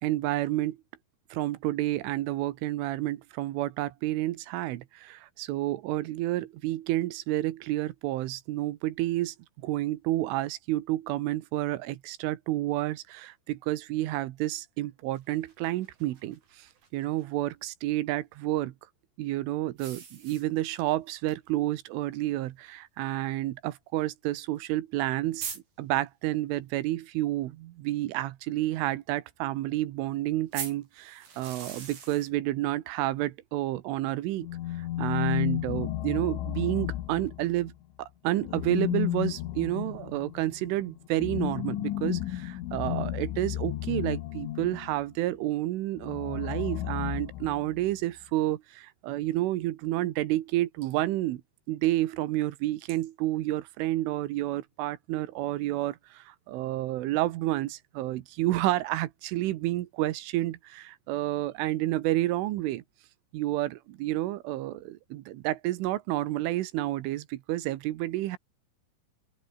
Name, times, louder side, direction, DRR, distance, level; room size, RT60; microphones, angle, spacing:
voice 1, 0.0-0.8 1.3-9.4 9.6-16.7 16.9-18.7 19.2-34.5 34.8-37.7 38.0-51.4 51.7-62.8 63.3-68.4, right 16 dB, 80° right, 3.7 m, -30 dB
sound 1, 15.1-17.2 19.8-20.9 21.3-21.4 21.7-21.8 22.8-22.9 24.6-24.7 25.0-25.1 25.4-25.6 30.5-32.3, right 6 dB, 50° right, 6.3 m, -41 dB
sound 2, 34.4-37.7 38.4-45.0 46.0-47.9, left 14 dB, 75° left, 4.0 m, -32 dB
open air
omnidirectional pair, 5.7 m